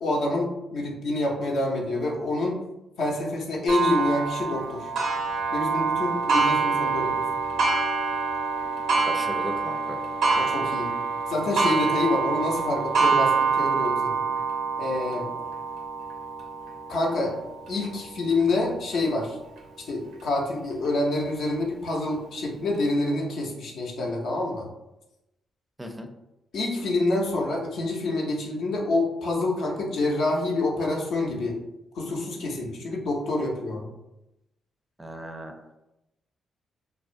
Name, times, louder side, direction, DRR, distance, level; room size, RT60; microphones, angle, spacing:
voice 1, 0.0-2.6 3.0-4.9 5.5-7.2 10.3-10.9 11.3-14.1 14.8-15.3 16.9-17.3 17.7-19.4 19.8-24.7 26.5-31.6 31.9-33.9, left 2 dB, 70° left, -1 dB, 0.5 m, -27 dB
Clock, 3.7-19.0 19.6-19.7 20.2-20.3 21.3-21.4, right 4 dB, 75° right, 0.5 m, -26 dB
voice 2, 9.1-10.0 11.8-11.9 25.8-26.1 35.0-35.5, equal, 15° right, 4 dB, 0.4 m, -36 dB
2.3 x 2.1 x 2.5 m, 0.91 s
hypercardioid pair, 45°, 0 cm